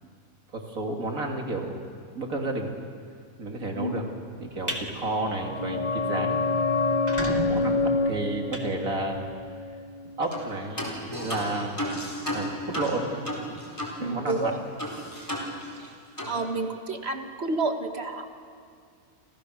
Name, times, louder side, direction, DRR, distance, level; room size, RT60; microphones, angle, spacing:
voice 1, 0.5-1.7 2.1-2.7 3.4-4.0 4.4-6.5 7.2-9.3 10.2-11.8 12.3-13.1 13.5-13.6 14.0-14.5 16.2-16.3, right 2 dB, 80° right, 2 dB, 3.2 m, -31 dB
sound 1, 4.4-4.8 5.3-5.5 5.9-6.0 6.2-6.3 6.8-9.4, right 1 dB, 10° right, 2.5 m, -35 dB
sound 2, 5.0-10.5 10.7-10.8, left 3 dB, 35° left, 1.7 m, -28 dB
sound 3, 10.3-10.5 10.8-14.0 14.3-14.4 14.8-15.9 16.2-16.4, equal, 15° left, 4.3 m, -33 dB
voice 2, 14.0-14.6 16.3-18.3, right 3 dB, 50° right, 5 dB, 1.8 m, -29 dB
29.5 x 26.5 x 6.6 m, 2.2 s
omnidirectional pair, 1.4 m